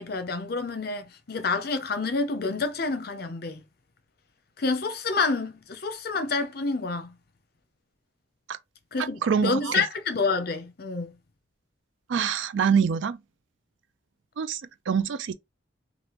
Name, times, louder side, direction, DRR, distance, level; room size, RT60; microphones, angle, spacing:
voice 1, 0.0-3.6 4.6-7.1 8.9-11.1, left 4 dB, 55° left, 0.6 m, -28 dB
voice 2, 9.2-9.8 12.1-13.2 14.4-15.3, right 6 dB, 80° right, 0.4 m, -25 dB
3.4 x 2.5 x 2.9 m
head